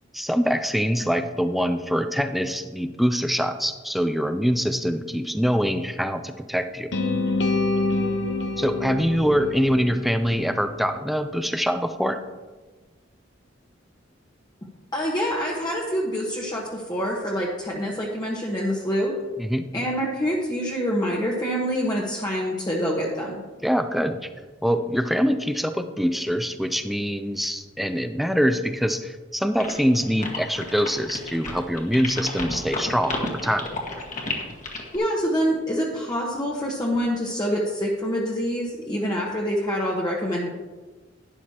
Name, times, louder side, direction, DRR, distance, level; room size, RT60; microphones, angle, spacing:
voice 1, 0.1-6.9 8.6-12.2 19.4-19.6 23.6-24.3 24.6-33.7, equal, ahead, 8 dB, 0.5 m, -24 dB
sound 1, 6.9-11.0, left 2 dB, 65° left, 1.0 m, -27 dB
voice 2, 14.9-19.1 19.7-23.4 34.9-40.5, equal, 20° left, -4 dB, 1.2 m, -26 dB
sound 2, 29.6-35.0, left 2 dB, 40° left, 1.7 m, -32 dB
12.0 x 10.0 x 2.9 m, 1.3 s
head